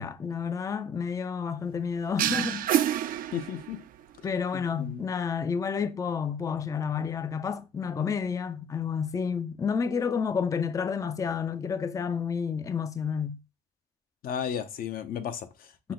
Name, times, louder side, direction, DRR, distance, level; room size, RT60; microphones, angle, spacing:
voice 1, 0.0-2.9 4.2-13.4 15.8-15.9, left 6 dB, 20° left, 0.4 m, -30 dB
sound 1, 2.2-4.0, right 11 dB, 55° right, 0.4 m, -27 dB
voice 2, 3.3-3.8 4.5-5.0 14.2-15.9, left 8 dB, 60° left, 0.7 m, -34 dB
6.0 x 2.1 x 3.7 m
cardioid pair, 110°, 17 cm